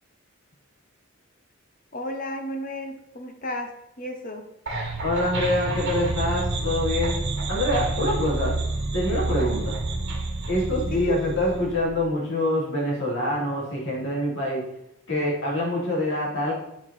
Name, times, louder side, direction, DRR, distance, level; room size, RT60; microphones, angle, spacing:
voice 1, 1.9-3.7 4.0-4.4 10.9-11.2, equal, 40° left, 5 dB, 1.0 m, -32 dB
sound 1, 4.7-11.8, right 2 dB, 55° right, 1.6 m, -29 dB
voice 2, 5.0-7.2 7.5-8.5 8.9-9.8 10.5-14.6 15.1-16.5, left 1 dB, 60° left, -5 dB, 3.5 m, -25 dB
9.0 x 5.8 x 4.3 m, 0.84 s
head